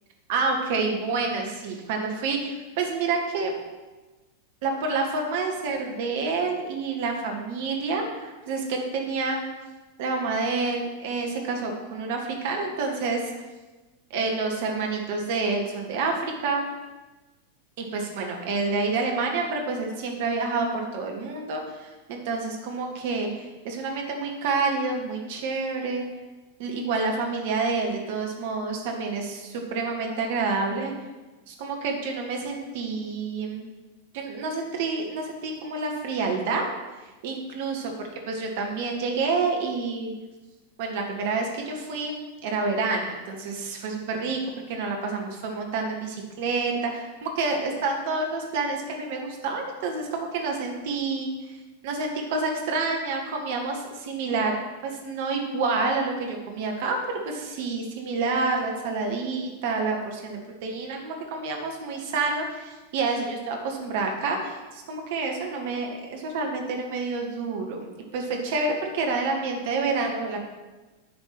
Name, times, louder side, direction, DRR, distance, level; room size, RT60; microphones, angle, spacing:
voice 1, 0.3-3.5 4.6-9.5 10.0-13.3 14.1-16.7 17.8-26.0 26.6-30.9 31.5-33.7 34.1-36.7 37.2-37.8 38.3-40.1 40.8-42.1 42.4-44.4 44.7-51.6 51.8-54.5 54.8-70.4, right 3 dB, 50° right, 2 dB, 1.7 m, -28 dB
9.9 x 5.3 x 6.1 m, 1.2 s
figure-of-eight pair, 90°, 0 cm